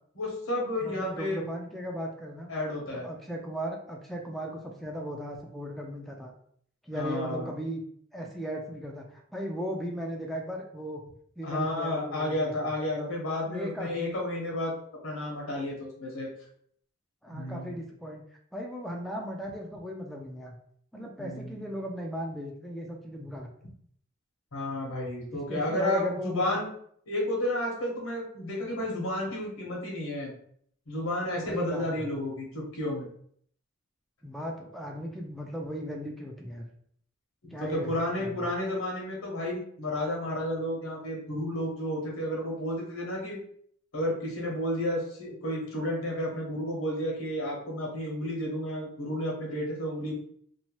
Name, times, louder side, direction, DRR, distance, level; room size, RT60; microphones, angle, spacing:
voice 1, 0.1-1.4 2.5-3.1 6.9-7.5 11.4-14.7 15.0-16.3 17.3-17.7 21.2-21.7 24.5-26.7 27.1-30.3 30.9-33.1 37.6-43.4 43.9-50.2, left 1 dB, 85° left, -2 dB, 1.1 m, -32 dB
voice 2, 0.7-2.5 2.9-6.3 6.8-7.8 8.1-11.0 11.4-12.7 13.4-14.1 17.2-18.2 18.5-20.6 20.9-23.5 25.3-26.6 31.4-32.1 34.2-36.7 37.5-37.9 38.2-38.5, equal, ahead, 0 dB, 0.3 m, -36 dB
2.8 x 2.2 x 3.0 m, 0.63 s
head